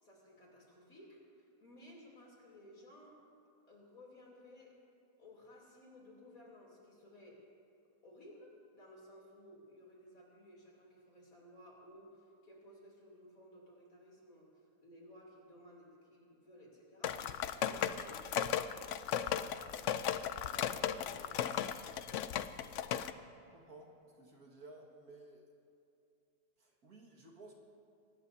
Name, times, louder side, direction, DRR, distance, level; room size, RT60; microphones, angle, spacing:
voice 1, 0.0-3.2 3.7-4.8 5.2-7.5 8.0-18.6 19.2-20.2 20.5-21.7, left 1 dB, 55° left, -3 dB, 3.7 m, -58 dB
sound 1, 17.0-23.1, left 9 dB, 70° left, 0.7 m, -36 dB
voice 2, 23.5-25.5 26.6-27.5, right 2 dB, 60° right, -1 dB, 2.3 m, -56 dB
23.5 x 19.5 x 2.8 m, 2.5 s
omnidirectional pair, 1.8 m